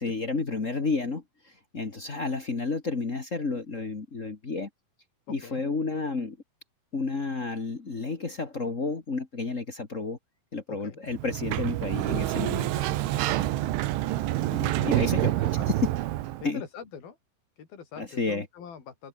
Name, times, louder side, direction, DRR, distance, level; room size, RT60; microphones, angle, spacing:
voice 1, 0.0-4.7 5.3-6.4 6.9-10.2 10.5-12.8 14.5-15.3 16.4-16.6 18.0-18.4, left 3 dB, 70° left, 0.7 m, -31 dB
voice 2, 5.3-5.6 10.7-11.0 13.4-13.7 14.6-15.7 16.4-17.2 17.6-19.1, left 7 dB, 50° left, 5.8 m, -43 dB
Sliding door, 11.1-16.5, right 15 dB, 80° right, 3.7 m, -27 dB
open air
omnidirectional pair, 5.5 m